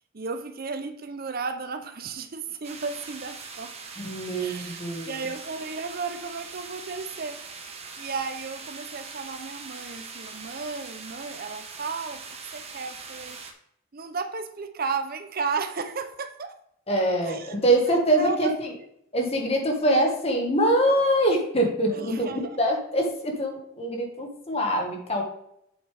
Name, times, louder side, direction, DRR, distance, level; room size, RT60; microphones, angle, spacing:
voice 1, 0.1-3.7 4.4-4.8 5.0-13.4 13.9-16.5 17.3-17.5 17.9-18.6 21.9-22.6, right 4 dB, 45° right, 9 dB, 0.6 m, -34 dB
sound 1, 2.6-13.5, right 4 dB, 30° right, 1.0 m, -41 dB
voice 2, 4.0-5.1 16.9-18.7 19.1-25.2, right 1 dB, 30° left, 2 dB, 1.6 m, -24 dB
8.0 x 7.2 x 3.4 m, 0.73 s
head